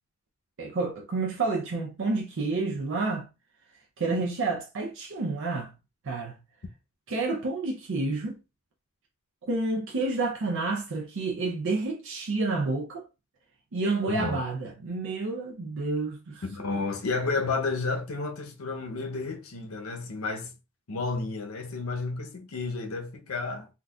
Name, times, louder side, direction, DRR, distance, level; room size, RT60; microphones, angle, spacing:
voice 1, 0.6-3.3 4.0-5.7 6.0-6.3 7.1-8.4 9.5-13.1 13.7-16.4, right 3 dB, 60° right, 0.5 m, -29 dB
voice 2, 14.1-14.4 16.4-20.5 20.9-23.7, left 3 dB, 70° left, 0.7 m, -31 dB
3.8 x 2.3 x 2.3 m
head